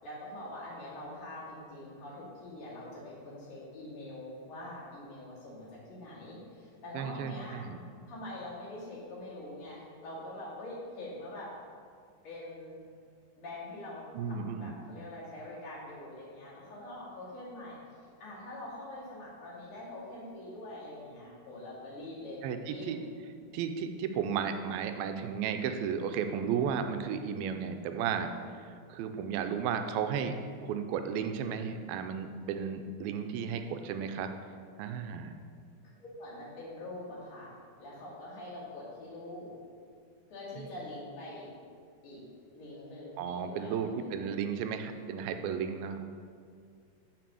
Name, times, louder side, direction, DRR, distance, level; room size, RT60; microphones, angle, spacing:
voice 1, 0.0-7.6 8.1-11.5 12.2-12.8 13.4-17.8 18.2-22.4 22.7-23.0 36.0-39.5 40.3-41.5 42.0-44.2 44.6-44.8, left 1 dB, 60° left, -8 dB, 3.9 m, -44 dB
voice 2, 6.9-7.8 14.1-14.7 22.4-23.0 23.5-28.3 28.6-30.3 30.6-34.3 34.8-35.3 40.6-40.7 43.2-46.0, right 7 dB, 90° right, 7 dB, 2.4 m, -34 dB
6.9 x 5.9 x 7.0 m, 2.1 s
omnidirectional pair, 4.2 m